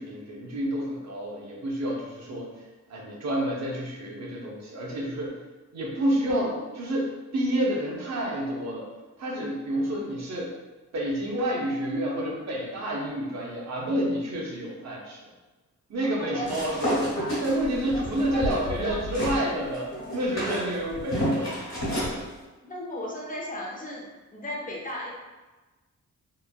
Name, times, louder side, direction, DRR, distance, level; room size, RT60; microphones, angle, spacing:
voice 1, 0.0-5.4 5.7-8.9 9.2-10.5 10.9-15.3 15.9-17.1 17.4-21.5 22.0-22.1, right 1 dB, 65° right, -2 dB, 0.6 m, -29 dB
voice 2, 16.1-16.5 17.9-18.0 18.3-19.0 20.0-20.1 22.6-24.1 24.3-25.1, left 1 dB, 30° left, -3 dB, 0.5 m, -35 dB
sound 1, 16.4-19.4 19.7-22.2, equal, 65° left, 1.4 m, -30 dB
3.1 x 2.1 x 2.3 m, 1.2 s
wide cardioid pair, 140°, 30 cm